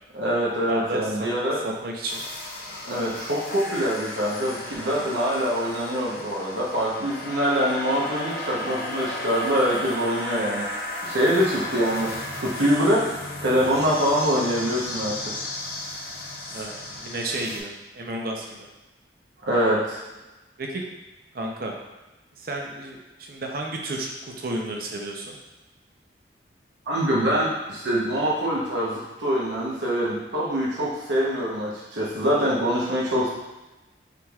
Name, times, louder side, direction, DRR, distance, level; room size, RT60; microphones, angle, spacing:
voice 1, 0.1-1.6 2.8-10.6 11.0-12.1 12.4-13.1 13.4-15.1 19.5-20.0 26.9-33.3, equal, 85° right, -5 dB, 0.9 m, -24 dB
voice 2, 0.7-1.3 1.6-2.2 16.5-18.7 20.6-20.8 21.3-21.8 22.4-25.4, right 1 dB, 55° right, 0 dB, 0.6 m, -32 dB
sound 1, 2.1-17.6, left 1 dB, 50° left, 0.7 m, -34 dB
5.6 x 3.4 x 2.4 m, 1.1 s
head